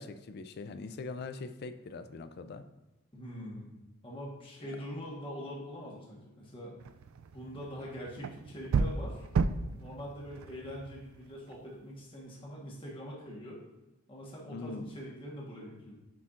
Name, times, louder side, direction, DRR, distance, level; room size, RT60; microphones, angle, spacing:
voice 1, 0.0-2.6 4.6-4.7 14.5-14.9, left 3 dB, 45° left, 10 dB, 0.3 m, -42 dB
voice 2, 3.1-3.7 4.0-6.8 7.3-9.3 9.8-13.6 14.1-16.0, equal, 25° left, -4 dB, 1.3 m, -43 dB
sound 1, 6.8-11.7, right 4 dB, 65° right, 0.3 m, -34 dB
9.2 x 4.3 x 2.5 m, 0.99 s
head